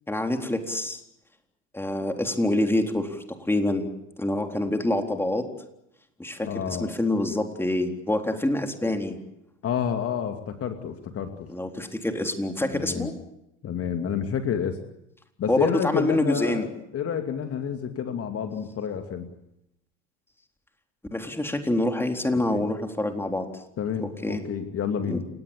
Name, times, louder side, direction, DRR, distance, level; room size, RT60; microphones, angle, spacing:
voice 1, 0.1-1.0 1.7-3.9 4.2-5.5 6.2-9.2 11.5-13.1 15.5-16.7 21.1-23.5 24.0-24.5 25.1-25.2, left 1 dB, 5° left, 4 dB, 3.8 m, -26 dB
voice 2, 6.4-7.0 9.6-11.5 12.7-13.1 13.6-14.8 15.4-16.7 16.9-19.3 22.5-22.7 23.8-25.3, left 8 dB, 40° left, 6 dB, 2.5 m, -29 dB
29.5 x 18.0 x 8.6 m, 0.83 s
hypercardioid pair, 70°, 37 cm